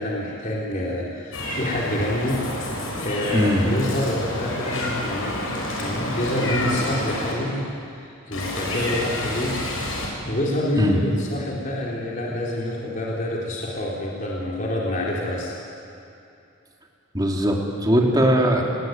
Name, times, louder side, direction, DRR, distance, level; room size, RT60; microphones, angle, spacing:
voice 1, 0.0-5.5 5.8-7.7 8.0-9.6 10.3-15.5, left 1 dB, 40° left, -4 dB, 4.0 m, -27 dB
Meow, 1.3-7.3 8.3-10.1, left 1 dB, 80° left, 6.9 m, -29 dB
voice 2, 3.3-3.7 10.8-11.0 17.1-18.8, equal, 20° right, 0 dB, 3.3 m, -20 dB
29.0 x 20.5 x 9.5 m, 2.7 s
head